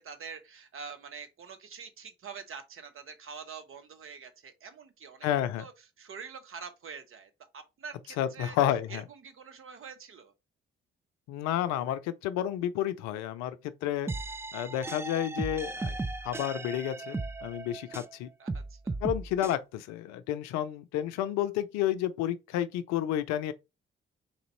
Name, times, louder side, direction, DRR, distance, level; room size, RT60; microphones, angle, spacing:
voice 1, 0.0-5.3 5.6-5.7 6.0-8.6 8.9-10.3 18.4-19.0, right 6 dB, 45° right, 1.0 m, -45 dB
voice 2, 5.2-5.6 8.2-9.0 11.3-13.6 13.8-14.1 14.5-15.9 16.2-18.3 19.0-23.5, left 11 dB, 60° left, 0.5 m, -30 dB
sound 1, 14.1-18.2 18.5-19.5, right 3 dB, 10° right, 0.3 m, -36 dB
3.9 x 2.9 x 4.3 m
figure-of-eight pair, 40°, 31 cm